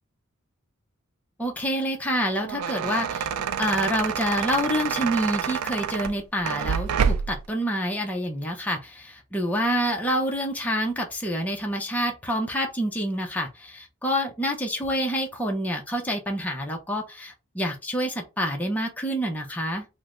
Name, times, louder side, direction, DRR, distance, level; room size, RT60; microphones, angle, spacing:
voice 1, 1.4-3.3 3.6-19.9, equal, 5° left, 1 dB, 0.5 m, -27 dB
sound 1, 2.2-7.5, right 7 dB, 80° right, 0.3 m, -28 dB
3.1 x 2.0 x 3.6 m, 0.28 s
head